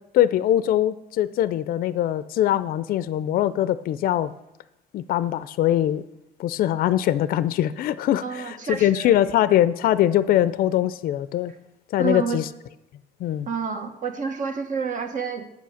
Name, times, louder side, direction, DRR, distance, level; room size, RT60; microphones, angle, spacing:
voice 1, 0.1-4.3 4.9-6.0 6.4-11.5 11.9-12.5 13.2-13.5, left 12 dB, 60° left, 15 dB, 0.4 m, -22 dB
voice 2, 8.2-9.1 12.0-12.4 13.5-15.4, right 5 dB, 50° right, 6 dB, 1.5 m, -29 dB
8.3 x 8.3 x 6.3 m, 0.91 s
cardioid pair, 110°, 17 cm